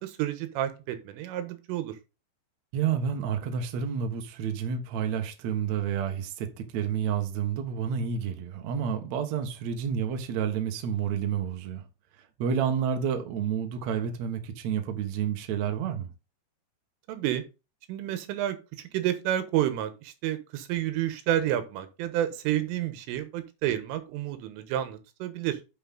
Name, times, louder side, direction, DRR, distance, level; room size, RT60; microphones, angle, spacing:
voice 1, 0.0-2.0 17.1-17.4 17.9-25.6, right 12 dB, 90° right, 3.8 m, -30 dB
voice 2, 2.7-11.8 12.2-16.1, right 7 dB, 65° right, 1.7 m, -30 dB
9.9 x 5.8 x 3.9 m
omnidirectional pair, 5.6 m